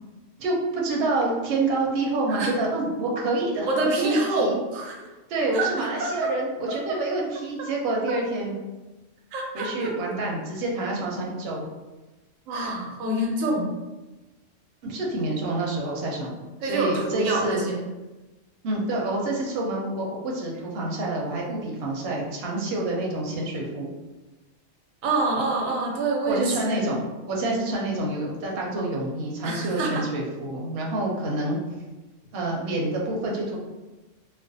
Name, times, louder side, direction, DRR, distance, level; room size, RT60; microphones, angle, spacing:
voice 1, 0.4-4.6 5.3-8.6 9.5-11.6 14.8-16.3 16.6-17.6 18.6-23.9 26.3-31.6 32.3-33.6, right 2 dB, 60° right, -2 dB, 0.7 m, -27 dB
voice 2, 3.7-5.0 5.5-5.7 6.0-6.3 6.9-7.0 9.3-9.9 12.5-13.7 16.6-17.8 25.0-27.0 29.4-30.0, right 2 dB, 85° right, -1 dB, 1.0 m, -26 dB
2.4 x 2.1 x 2.5 m, 1.1 s
omnidirectional pair, 1.3 m